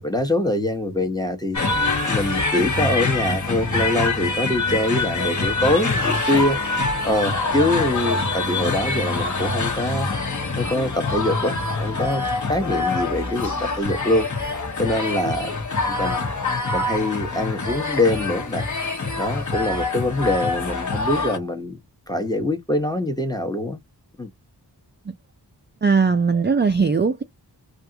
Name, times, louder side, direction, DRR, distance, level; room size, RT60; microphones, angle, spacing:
voice 1, 0.0-10.1 10.6-15.6 16.0-16.2 16.7-18.7 19.2-21.8 22.1-23.8 24.2-24.3, left 1 dB, 10° left, 0.9 m, -24 dB
sound 1, 1.5-21.4, left 3 dB, 45° left, 1.0 m, -25 dB
voice 2, 25.8-27.2, right 5 dB, 25° right, 0.4 m, -19 dB
3.4 x 2.4 x 2.7 m
wide cardioid pair, 75°, 41 cm